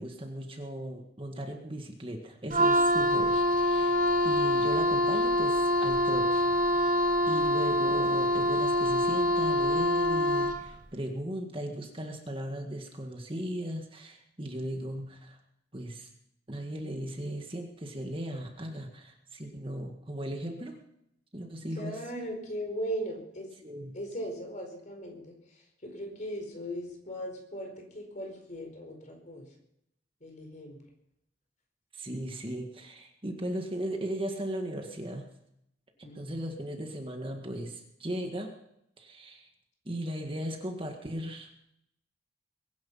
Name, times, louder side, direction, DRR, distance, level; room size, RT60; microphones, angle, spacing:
voice 1, 0.0-6.9 7.3-15.4 15.7-16.1 16.5-20.8 21.3-22.0 23.6-24.0 31.9-35.3 36.0-38.5 39.0-39.5 39.9-41.5, right 1 dB, 30° right, 3 dB, 1.9 m, -37 dB
Wind instrument woodwind instrument, 2.5-10.7, equal, 45° right, 1.3 m, -25 dB
voice 2, 21.7-23.5 23.9-25.3 25.8-29.4 30.2-30.8 36.0-36.4, equal, 45° left, 3 dB, 4.8 m, -38 dB
22.0 x 10.5 x 5.6 m, 0.78 s
head